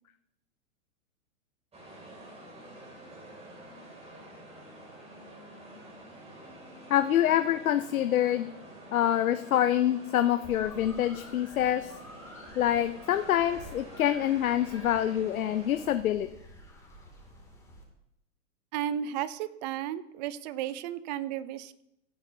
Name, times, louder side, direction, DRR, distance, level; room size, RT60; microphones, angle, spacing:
sound 1, 1.7-15.9, right 1 dB, 15° right, 2.9 m, -48 dB
voice 1, 6.9-8.5 8.9-11.9 12.6-16.3, left 11 dB, 75° left, 10 dB, 0.7 m, -26 dB
sound 2, 10.4-17.8, left 1 dB, 5° left, 2.5 m, -50 dB
voice 2, 18.7-21.8, right 10 dB, 30° right, 16 dB, 0.5 m, -34 dB
16.5 x 8.9 x 2.8 m, 0.81 s
hypercardioid pair, 115°, 42 cm